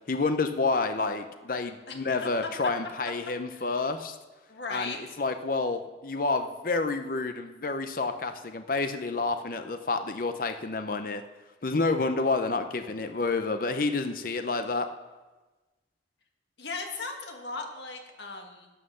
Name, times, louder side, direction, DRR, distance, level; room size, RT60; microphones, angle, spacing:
voice 1, 0.1-4.1 4.7-11.2 11.6-14.9, left 3 dB, 50° left, 8 dB, 0.7 m, -29 dB
voice 2, 4.5-5.0 16.6-18.7, left 3 dB, 75° left, 3 dB, 1.6 m, -37 dB
11.5 x 7.6 x 6.5 m, 1.2 s
head